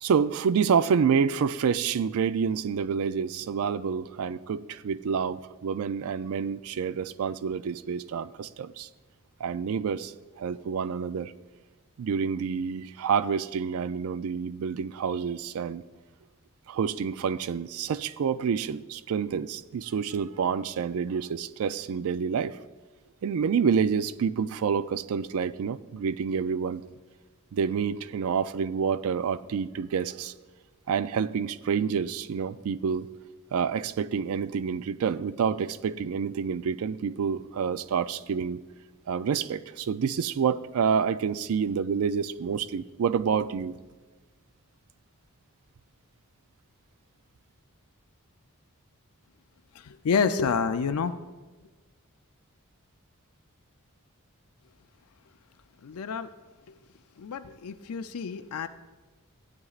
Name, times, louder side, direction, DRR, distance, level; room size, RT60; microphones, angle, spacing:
voice 1, 0.0-8.9 9.4-11.3 12.0-15.8 16.7-22.6 23.2-26.8 27.5-30.3 30.9-33.1 33.5-38.6 39.1-43.8, right 6 dB, 70° right, 15 dB, 0.4 m, -28 dB
voice 2, 49.8-51.1 55.8-56.3 57.2-58.7, left 5 dB, 90° left, 8 dB, 0.4 m, -28 dB
15.5 x 9.6 x 2.4 m, 1.3 s
head